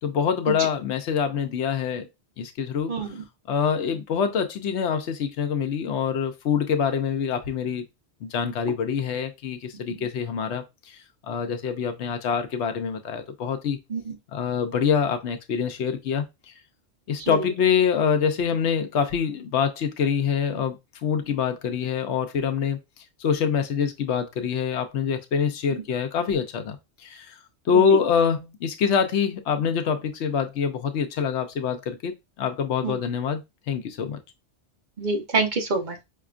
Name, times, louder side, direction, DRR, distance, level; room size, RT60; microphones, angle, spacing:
voice 1, 0.0-2.1 2.4-2.9 3.5-7.8 8.2-11.0 11.3-13.8 14.3-16.3 17.1-22.8 23.2-27.4 27.7-34.2, left 7 dB, 80° left, 0.9 m, -25 dB
voice 2, 35.0-36.0, right 4 dB, 45° right, 1.0 m, -26 dB
5.5 x 2.3 x 2.4 m
omnidirectional pair, 1.1 m